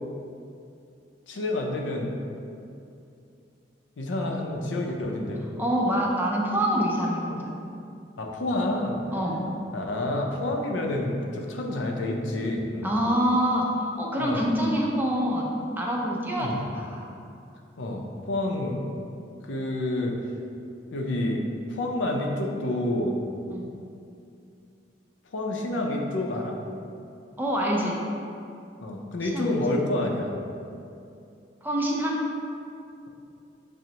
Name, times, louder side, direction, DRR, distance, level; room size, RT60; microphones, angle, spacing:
voice 1, 1.3-2.1 4.0-5.5 8.2-9.0 9.7-12.9 14.2-14.4 16.4-16.6 17.8-18.8 19.5-20.1 20.9-21.4 21.7-23.2 25.3-26.6 28.8-30.3, left 1 dB, 90° left, 1 dB, 0.5 m, -28 dB
voice 2, 5.6-7.8 9.1-9.4 12.8-17.1 23.5-23.7 27.4-28.0 29.2-29.6 31.6-32.2, equal, 10° right, -2 dB, 0.4 m, -26 dB
6.0 x 2.0 x 2.8 m, 2.6 s
head